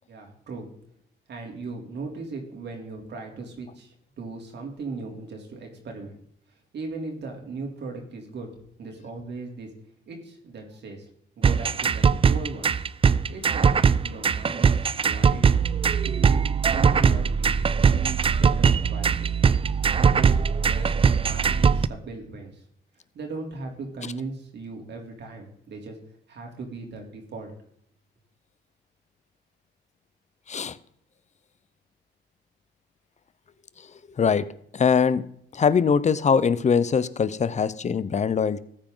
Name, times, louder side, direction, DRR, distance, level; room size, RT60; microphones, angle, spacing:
voice 1, 0.1-0.7 1.3-6.2 6.7-8.5 8.8-9.7 10.1-11.1 11.4-12.7 13.3-13.7 14.0-14.7 15.0-15.6 16.0-16.4 16.7-17.6 17.9-19.3 19.9-21.0 21.2-22.6 23.1-26.0 26.3-27.5, right 3 dB, 60° right, 3.3 m, -38 dB
sound 1, 11.4-21.9, right 6 dB, 30° right, 0.5 m, -21 dB
voice 2, 34.7-35.2 35.5-38.6, left 6 dB, 35° left, 0.8 m, -22 dB
14.5 x 9.1 x 3.9 m
cardioid pair, 90°, 20 cm